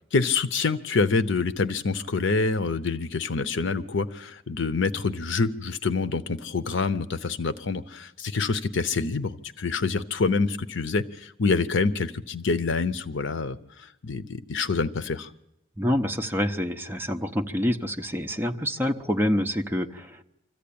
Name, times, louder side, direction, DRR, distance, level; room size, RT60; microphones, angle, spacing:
voice 1, 0.1-15.3, left 4 dB, 70° left, 13 dB, 0.7 m, -26 dB
voice 2, 15.8-20.2, equal, 10° right, 4 dB, 0.9 m, -27 dB
25.0 x 14.5 x 8.6 m, 0.91 s
head